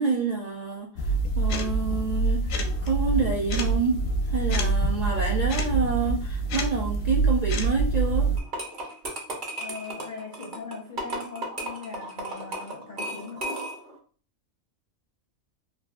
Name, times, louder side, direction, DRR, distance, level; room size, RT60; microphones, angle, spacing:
voice 1, 0.0-4.0 4.3-8.3, right 4 dB, 75° right, -2 dB, 0.3 m, -28 dB
sound 1, 1.0-8.4, right 3 dB, 85° left, 1.0 m, -25 dB
sound 2, 8.4-13.9, right 1 dB, 45° right, 0.9 m, -35 dB
voice 2, 9.6-13.7, left 4 dB, 55° left, 0 dB, 0.5 m, -40 dB
3.6 x 2.5 x 2.4 m, 0.42 s
omnidirectional pair, 1.3 m